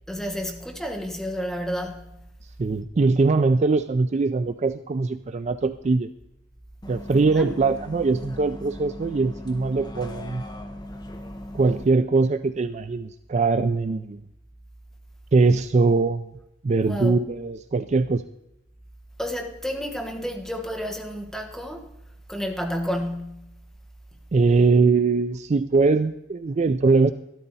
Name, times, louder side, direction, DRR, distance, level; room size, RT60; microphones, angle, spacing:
voice 1, 0.1-2.1 7.3-7.5 16.8-17.2 19.2-21.9 22.3-23.5, equal, ahead, 1.3 m, -31 dB
voice 2, 2.6-6.1 6.9-10.4 11.5-14.2 15.3-16.3 16.6-18.2 24.3-27.1, right 3 dB, 35° right, 0.4 m, -21 dB
Bus, 6.8-11.8, left 1 dB, 20° left, 1.1 m, -38 dB
12.5 x 12.5 x 4.1 m
head